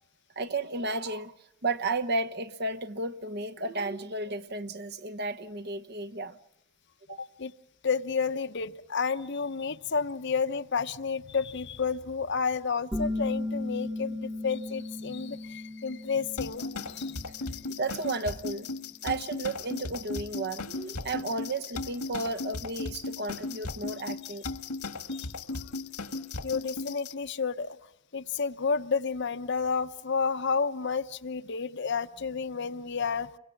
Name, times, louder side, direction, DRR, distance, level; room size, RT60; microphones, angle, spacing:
voice 1, 0.4-1.3 1.6-6.4 7.1-7.2 16.6-16.7 17.8-18.7 19.0-24.4, right 2 dB, 45° right, 1.0 m, -33 dB
voice 2, 7.2-7.5 7.8-17.2 25.1-25.3 26.4-27.8 28.1-33.3, left 5 dB, 50° left, 0.8 m, -31 dB
sound 1, 12.9-18.3, left 2 dB, 5° right, 1.1 m, -36 dB
sound 2, 16.4-27.1, left 3 dB, 85° left, 1.8 m, -36 dB
29.0 x 23.5 x 5.9 m
head